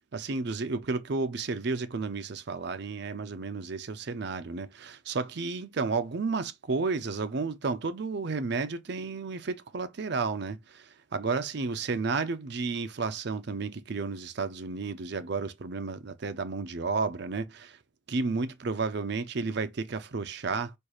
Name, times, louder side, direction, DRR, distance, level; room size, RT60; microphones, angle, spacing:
voice 1, 0.1-17.8 18.1-20.7, right 4 dB, 55° right, 0.5 m, -32 dB
4.4 x 2.4 x 4.8 m
head